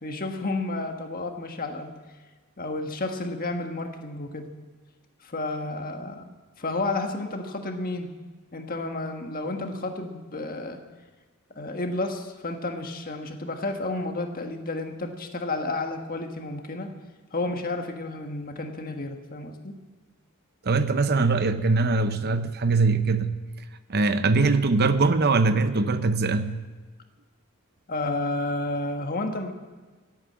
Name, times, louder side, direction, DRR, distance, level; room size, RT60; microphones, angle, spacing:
voice 1, 0.0-2.0 2.6-4.5 5.2-6.3 6.6-8.1 8.5-10.8 11.5-16.9 17.3-19.7 27.9-29.5, left 2 dB, 40° left, 5 dB, 1.5 m, -31 dB
voice 2, 20.6-23.4 23.9-26.6, right 3 dB, 50° right, 11 dB, 0.8 m, -22 dB
16.0 x 9.0 x 8.6 m, 1.3 s
head